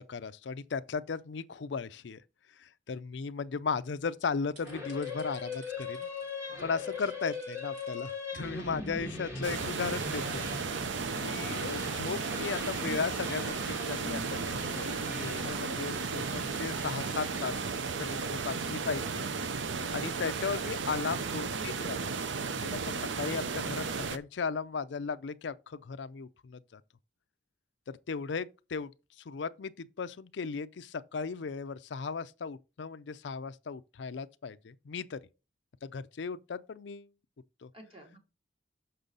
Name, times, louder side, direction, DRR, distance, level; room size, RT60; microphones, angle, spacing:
voice 1, 0.0-2.2 2.6-6.1 6.6-10.5 11.2-17.6 18.0-19.3 19.9-22.1 22.5-26.8 27.9-28.9 29.3-35.2 35.8-37.1 37.6-37.7, left 5 dB, 75° left, 0.4 m, -36 dB
sound 1, 4.0-4.1 4.5-6.4 6.9-8.3 9.1-9.2 9.4-9.9 10.7-13.2 13.7-16.6, right 1 dB, 60° right, 4.7 m, -59 dB
sound 2, 4.6-18.2, left 3 dB, 15° right, 1.7 m, -41 dB
sound 3, 9.4-24.2, right 5 dB, 85° right, 0.7 m, -34 dB
voice 2, 21.1-21.4 37.7-38.2, right 1 dB, 30° right, 2.4 m, -51 dB
6.7 x 6.1 x 3.9 m
head